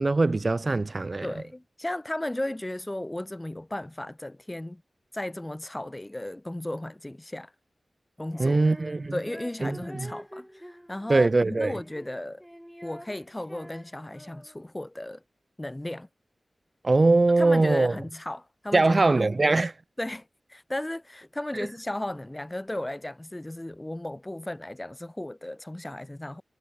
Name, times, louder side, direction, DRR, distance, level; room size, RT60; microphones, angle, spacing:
voice 1, 0.0-1.3 8.4-9.1 9.6-10.1 11.1-11.8 16.8-17.9 18.7-19.7 21.5-21.7, right 3 dB, 45° right, 0.4 m, -22 dB
voice 2, 1.2-4.8 5.1-7.5 8.2-8.6 9.1-12.5 12.8-15.2 15.6-16.1 17.4-19.2 20.0-26.4, left 1 dB, 20° left, 2.4 m, -35 dB
Female singing, 8.3-14.7, equal, ahead, 1.7 m, -46 dB
wide cardioid pair, 65°, 0 cm